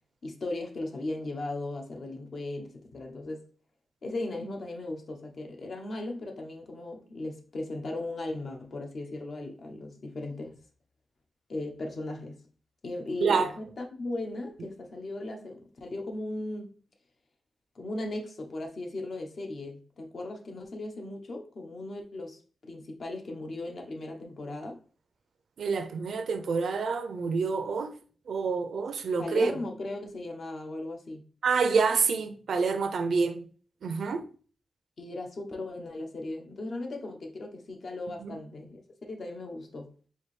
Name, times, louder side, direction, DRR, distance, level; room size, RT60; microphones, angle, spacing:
voice 1, 0.2-3.5 4.0-10.6 11.5-12.4 12.8-16.7 17.7-24.8 29.2-31.2 35.0-39.9, left 2 dB, 60° left, 0.9 m, -37 dB
voice 2, 25.6-27.9 28.3-29.5 31.4-33.4 33.8-34.2 38.2-38.4, right 5 dB, 80° right, 0.5 m, -27 dB
4.5 x 2.7 x 3.2 m
cardioid pair, 85°, 0 cm